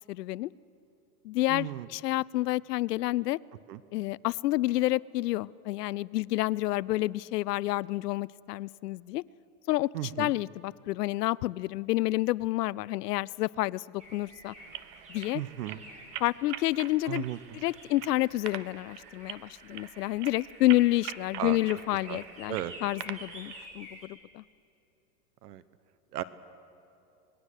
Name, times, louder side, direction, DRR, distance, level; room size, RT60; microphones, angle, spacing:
voice 1, 0.1-0.5 1.2-3.4 3.9-9.2 9.7-9.9 10.2-14.5 15.1-15.4 16.2-17.2 17.5-22.6 22.8-24.4, left 17 dB, 80° left, 21 dB, 0.6 m, -29 dB
voice 2, 1.5-1.9 3.7-3.8 9.9-10.3 15.3-15.8 17.1-17.4 21.4-21.6 22.1-22.2 22.5-22.7 25.4-25.6 26.1-26.2, right 13 dB, 75° right, 15 dB, 1.0 m, -35 dB
sound 1, 14.0-24.1, equal, 15° right, 5.3 m, -51 dB
sound 2, 14.6-23.7, right 12 dB, 50° right, 1.1 m, -45 dB
26.5 x 20.5 x 6.5 m, 2.9 s
supercardioid pair, 135°, 47 cm